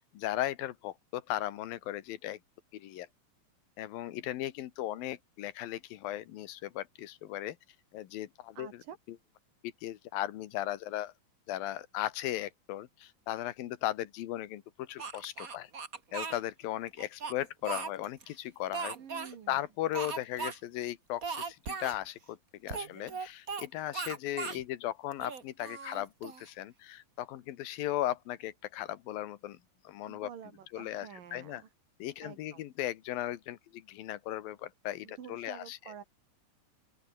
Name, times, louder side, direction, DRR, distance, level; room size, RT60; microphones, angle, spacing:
voice 1, 0.1-2.4 2.7-3.1 3.8-7.6 7.9-8.8 9.1-9.2 9.6-11.1 11.5-15.7 16.1-19.0 19.5-29.6 29.8-30.3 30.7-31.6 32.0-35.9, left 13 dB, 85° left, 3.0 m, -37 dB
voice 2, 8.6-9.0 18.9-19.6 30.1-31.7 32.2-32.7 35.0-36.0, right 8 dB, 70° right, 4.2 m, -49 dB
Speech, 15.0-16.4 17.0-18.2 18.7-19.3 19.9-20.6 20.8-20.9 21.2-22.0 22.7-23.7 23.9-24.6 25.1-26.5, right 5 dB, 30° right, 1.8 m, -38 dB
open air
omnidirectional pair, 4.0 m